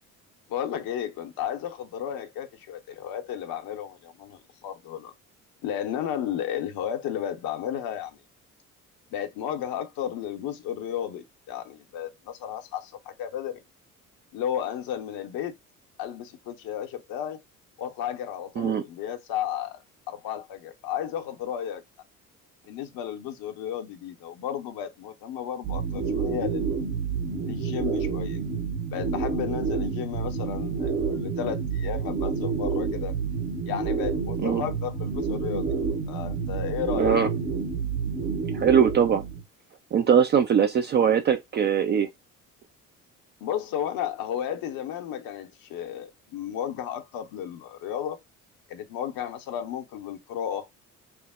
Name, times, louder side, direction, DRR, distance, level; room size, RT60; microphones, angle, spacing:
voice 1, 0.5-5.1 5.6-8.2 9.1-13.6 14.3-15.5 16.0-17.4 17.8-19.8 20.1-21.8 22.7-26.7 27.4-28.4 28.9-33.1 33.7-35.7 36.1-37.2 43.4-48.2 48.7-50.7, left 10 dB, 55° left, 0.7 m, -33 dB
sound 1, 25.6-39.4, right 5 dB, 65° right, 1.1 m, -29 dB
voice 2, 37.0-37.3 38.5-39.2 39.9-42.1, right 7 dB, 25° right, 0.3 m, -21 dB
3.1 x 2.0 x 3.4 m
figure-of-eight pair, 50°, 44 cm